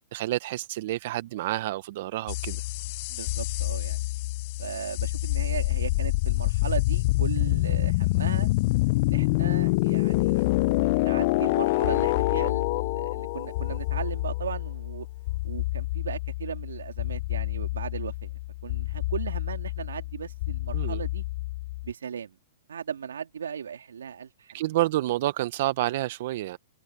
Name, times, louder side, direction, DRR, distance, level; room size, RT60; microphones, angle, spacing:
voice 1, 0.1-2.6 20.7-21.0 24.5-26.6, right 16 dB, 60° right, 0.7 m, -29 dB
sound 1, 2.3-21.9, left 21 dB, 50° left, 0.5 m, -27 dB
voice 2, 3.1-4.0 4.6-8.5 9.0-15.1 15.4-21.2 21.8-22.4 22.7-24.6, right 7 dB, 85° right, 3.3 m, -37 dB
hypercardioid pair, 125°, 0 cm